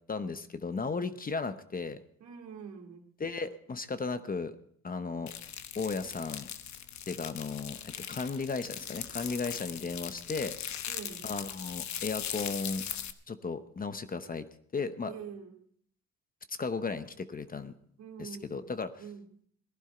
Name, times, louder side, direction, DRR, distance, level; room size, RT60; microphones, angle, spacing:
voice 1, 0.1-2.0 3.2-4.6 4.8-5.3 5.7-6.5 7.1-10.5 11.2-12.9 13.3-14.4 14.7-15.1 16.5-17.8 18.2-18.9, left 4 dB, 30° left, 11 dB, 0.9 m, -35 dB
voice 2, 2.2-3.0 10.9-11.2 15.1-15.6 18.0-18.7 19.0-19.2, right 7 dB, 70° right, 2 dB, 2.6 m, -45 dB
sound 1, 5.3-13.1, left 10 dB, 65° left, 1.0 m, -40 dB
18.0 x 11.5 x 4.4 m, 0.63 s
cardioid pair, 90°, 30 cm